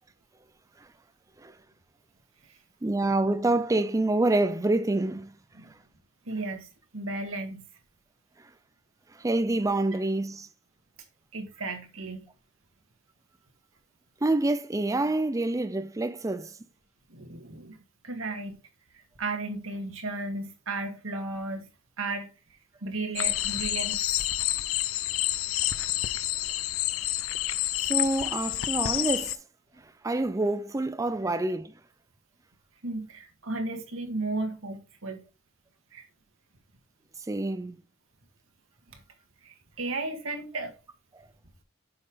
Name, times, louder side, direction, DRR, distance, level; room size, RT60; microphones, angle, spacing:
voice 1, 2.8-5.3 8.4-8.5 9.1-10.5 14.2-16.6 27.8-29.4 29.8-31.7 37.3-37.8, right 2 dB, 15° right, 0.4 m, -27 dB
voice 2, 6.3-6.7 6.9-7.6 11.3-12.3 17.1-18.6 19.2-21.7 22.0-22.3 22.8-24.0 32.8-35.2 35.9-36.0 38.9-39.0 39.4-40.8, right 2 dB, 90° right, 1.8 m, -34 dB
sound 1, 23.2-29.4, left 14 dB, 90° left, 0.5 m, -28 dB
7.9 x 5.5 x 3.5 m
head